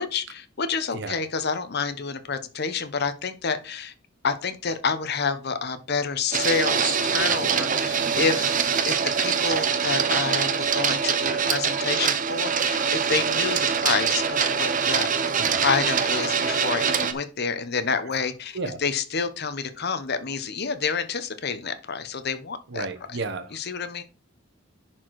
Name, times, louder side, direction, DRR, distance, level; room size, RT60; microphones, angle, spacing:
voice 1, 0.0-3.9 4.2-8.6 8.9-15.1 15.4-22.9 23.5-24.0, left 5 dB, 55° left, 10 dB, 1.0 m, -28 dB
Printer, 6.3-17.1, right 6 dB, 40° right, 0.9 m, -24 dB
voice 2, 22.7-23.5, right 3 dB, 60° right, 10 dB, 1.2 m, -32 dB
10.5 x 4.5 x 4.7 m, 0.35 s
head